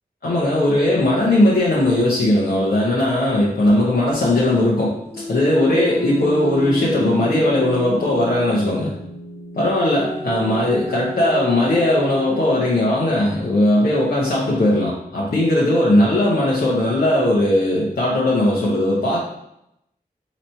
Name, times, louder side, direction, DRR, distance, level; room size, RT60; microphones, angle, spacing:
voice 1, 0.2-4.9 5.3-8.9 9.5-19.2, left 1 dB, 85° left, -7 dB, 0.9 m, -18 dB
sound 1, 5.1-8.6 9.7-12.8 13.9-14.3, left 1 dB, 15° left, 0.5 m, -32 dB
sound 2, 5.7-13.4, right 1 dB, 60° right, 0.8 m, -37 dB
4.0 x 3.1 x 4.3 m, 0.81 s
wide cardioid pair, 80°, 16 cm